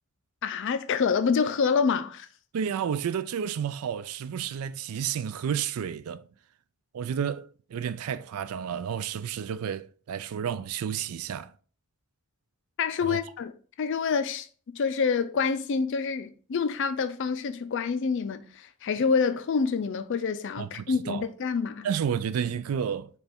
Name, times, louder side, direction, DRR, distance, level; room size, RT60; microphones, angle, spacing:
voice 1, 0.4-2.3 12.8-13.5 13.8-21.9, left 5 dB, 55° left, 0.4 m, -27 dB
voice 2, 2.5-6.2 6.9-11.5 13.0-13.2 20.6-21.2 21.8-23.1, right 8 dB, 75° right, 0.3 m, -31 dB
5.3 x 2.3 x 4.2 m
head